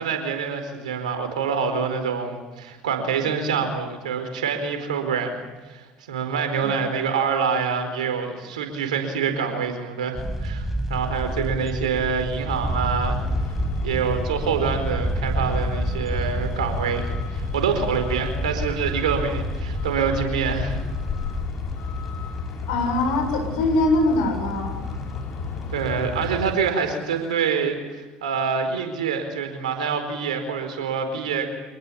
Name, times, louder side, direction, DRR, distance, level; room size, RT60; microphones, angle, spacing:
voice 1, 0.0-5.4 5.6-13.3 13.8-20.8 25.7-31.5, right 6 dB, 80° right, 7 dB, 4.6 m, -26 dB
sound 1, 10.1-24.2 24.6-24.7 24.9-25.1 26.0-26.5 26.8-26.9 27.2-27.3, right 1 dB, 5° right, 5.9 m, -30 dB
Truck, 13.2-26.6, left 4 dB, 50° left, 5.3 m, -32 dB
voice 2, 22.7-24.8, left 2 dB, 75° left, 4 dB, 7.6 m, -22 dB
26.5 x 19.5 x 8.7 m, 1.2 s
hypercardioid pair, 65°, 4 cm